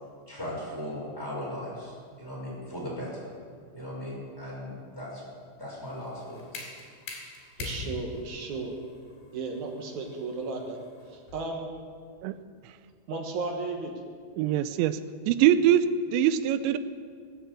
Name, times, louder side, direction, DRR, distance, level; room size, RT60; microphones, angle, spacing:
voice 1, 0.3-3.3 3.7-5.2 5.6-6.4, left 1 dB, 5° left, -6 dB, 5.1 m, -37 dB
sound 1, 5.9-11.6, left 4 dB, 75° left, 4.8 m, -42 dB
voice 2, 7.6-8.7 9.3-10.8 11.1-11.7 13.1-13.9, right 3 dB, 60° right, 1 dB, 2.2 m, -34 dB
voice 3, 14.4-15.0 15.3-15.8 16.1-16.8, right 11 dB, 85° right, 12 dB, 3.0 m, -22 dB
18.5 x 8.5 x 8.0 m, 2.1 s
omnidirectional pair, 5.2 m